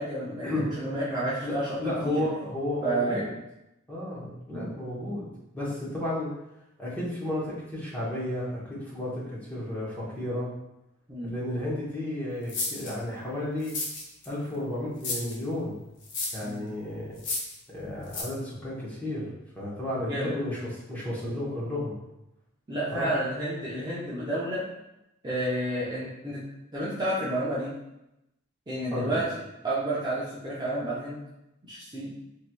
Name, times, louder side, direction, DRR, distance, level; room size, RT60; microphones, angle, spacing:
voice 1, 0.0-1.7 2.0-2.2 2.8-3.2 4.5-4.7 11.1-11.3 16.4-16.7 20.0-20.4 22.7-24.6 25.2-26.4 26.7-27.7 28.7-29.2 29.6-31.2 31.6-32.1, right 1 dB, 20° right, -9 dB, 0.6 m, -30 dB
voice 2, 1.4-3.3 3.9-5.3 5.5-6.3 6.8-10.5 11.2-13.7 14.2-15.8 16.3-17.1 17.7-22.0 22.9-23.1 28.9-29.2, left 1 dB, 5° left, -8 dB, 0.9 m, -33 dB
sound 1, 12.5-12.9 13.6-14.3 15.0-15.3 16.0-16.5 17.2-17.6 18.1-18.2, left 3 dB, 55° left, 0.7 m, -32 dB
3.1 x 2.8 x 2.2 m, 0.89 s
head